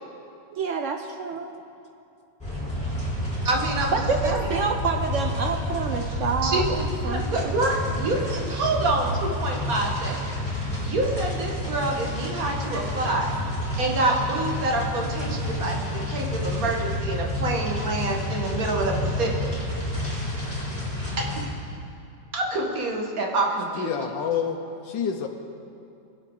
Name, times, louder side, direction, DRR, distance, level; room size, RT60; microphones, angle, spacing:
voice 1, 0.5-1.3 3.9-7.5 12.7-12.8, right 5 dB, 70° right, 5 dB, 0.7 m, -28 dB
sound 1, 2.4-21.4, left 1 dB, 5° left, 3.1 m, -29 dB
voice 2, 3.4-3.9 4.2-4.5 6.4-6.7 7.0-19.6 19.9-20.0 21.2-21.4 22.3-23.9, right 2 dB, 50° right, 0 dB, 1.8 m, -27 dB
voice 3, 23.7-24.6 24.8-25.3, left 7 dB, 80° left, 4 dB, 1.4 m, -27 dB
23.0 x 8.1 x 3.8 m, 2.6 s
omnidirectional pair, 2.0 m